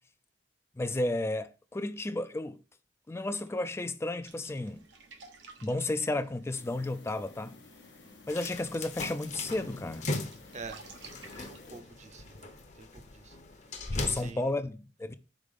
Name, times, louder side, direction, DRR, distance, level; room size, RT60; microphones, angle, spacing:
voice 1, 0.8-2.6 3.1-4.8 5.6-7.6 8.3-10.1 13.9-15.2, left 2 dB, 15° left, 0.3 m, -33 dB
sound 1, 4.2-12.6, right 4 dB, 90° right, 1.1 m, -55 dB
sound 2, 6.5-11.8, left 3 dB, 75° left, 1.0 m, -55 dB
sound 3, 8.3-14.3, left 2 dB, 40° left, 0.9 m, -39 dB
voice 2, 10.5-10.9 11.4-12.4 12.7-13.4 13.7-14.5, right 4 dB, 40° right, 0.7 m, -47 dB
5.1 x 4.1 x 5.3 m
head